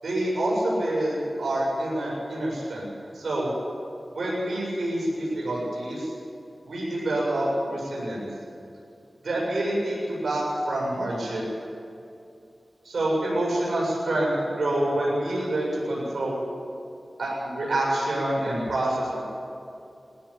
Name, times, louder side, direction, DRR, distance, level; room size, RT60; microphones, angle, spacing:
voice 1, 0.0-3.5 4.1-6.1 6.6-8.3 9.2-11.4 12.8-16.4 17.2-19.4, right 1 dB, 80° right, -5 dB, 7.8 m, -27 dB
20.0 x 17.5 x 8.9 m, 2.6 s
wide cardioid pair, 65°, 0 cm